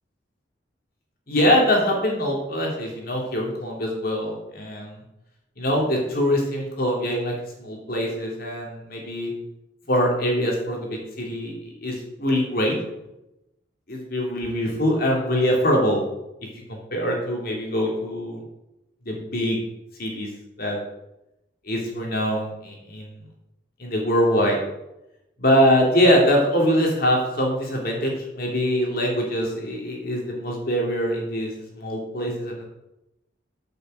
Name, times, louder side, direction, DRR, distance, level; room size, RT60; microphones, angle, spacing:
voice 1, 1.3-5.0 5.6-9.3 9.9-12.8 13.9-16.0 16.7-18.4 19.0-19.6 20.0-20.3 20.6-20.8 21.6-23.2 23.8-24.6 25.4-32.6, equal, 50° left, -1 dB, 3.0 m, -23 dB
10.5 x 6.7 x 8.3 m, 0.91 s
head